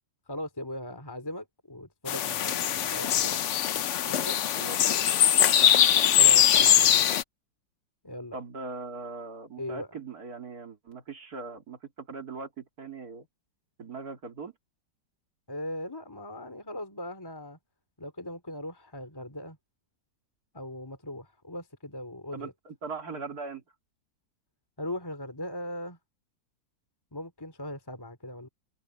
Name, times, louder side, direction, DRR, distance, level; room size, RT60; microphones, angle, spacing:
voice 1, 0.3-3.4 4.0-4.4 6.2-7.1 8.0-8.4 9.6-9.9 15.5-17.6 18.0-19.6 20.5-22.5 24.8-26.0 27.1-28.5, left 1 dB, 10° left, 2.6 m, -39 dB
sound 1, 2.1-7.2, left 10 dB, 65° left, 0.7 m, -22 dB
voice 2, 4.5-5.1 5.5-5.8 8.3-13.3 13.8-14.5 22.3-23.6, right 4 dB, 55° right, 3.2 m, -40 dB
omnidirectional pair, 2.0 m